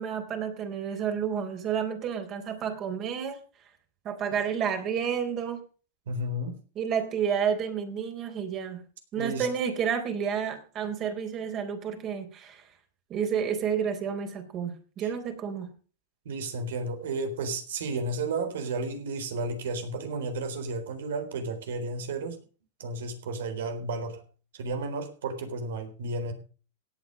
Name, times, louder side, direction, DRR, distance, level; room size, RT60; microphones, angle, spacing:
voice 1, 0.0-3.4 4.0-5.6 6.8-8.8 9.1-12.6 13.1-15.7, right 7 dB, 35° right, 6 dB, 3.7 m, -30 dB
voice 2, 6.1-6.6 9.2-9.5 16.3-22.4 22.8-24.2 24.5-26.3, right 2 dB, 75° right, 8 dB, 3.8 m, -32 dB
17.0 x 8.6 x 5.3 m, 0.39 s
hypercardioid pair, 110°, 0 cm